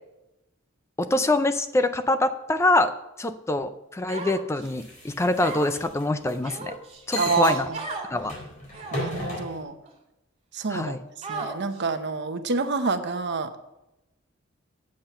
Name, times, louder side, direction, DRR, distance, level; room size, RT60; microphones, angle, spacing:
voice 1, 1.0-2.9 3.2-6.7 7.1-7.7 8.1-8.3 10.7-11.0, left 2 dB, 15° left, 10 dB, 0.4 m, -24 dB
Human voice, 4.1-4.7 5.4-5.8 6.4-7.0 7.7-8.1 8.7-9.2 9.9-10.0 11.2-11.8, right 3 dB, 30° right, 2.1 m, -35 dB
sound 1, 4.6-6.4 7.1-7.6 8.2-9.6, left 1 dB, 40° left, 4.1 m, -35 dB
voice 2, 7.1-7.8 8.9-9.7 10.5-11.0 11.3-13.6, right 4 dB, 55° right, 8 dB, 0.9 m, -27 dB
8.7 x 7.7 x 5.6 m, 0.92 s
head